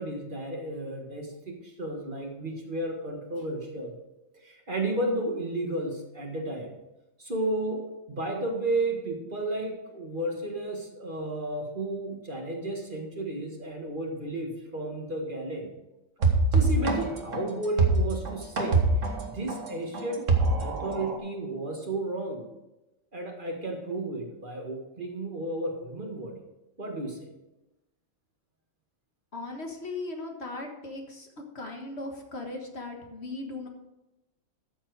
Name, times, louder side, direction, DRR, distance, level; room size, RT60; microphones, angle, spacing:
voice 1, 0.0-4.0 4.4-6.7 7.2-7.8 8.1-15.7 16.5-20.2 20.6-22.5 23.1-26.4 26.8-27.3, right 2 dB, 40° right, 1 dB, 1.8 m, -33 dB
sound 1, 16.2-21.2, right 3 dB, 70° right, 1.8 m, -24 dB
voice 2, 29.3-31.3 31.6-33.7, left 2 dB, 50° left, 2 dB, 1.8 m, -38 dB
13.0 x 7.3 x 4.7 m, 0.97 s
omnidirectional pair, 1.4 m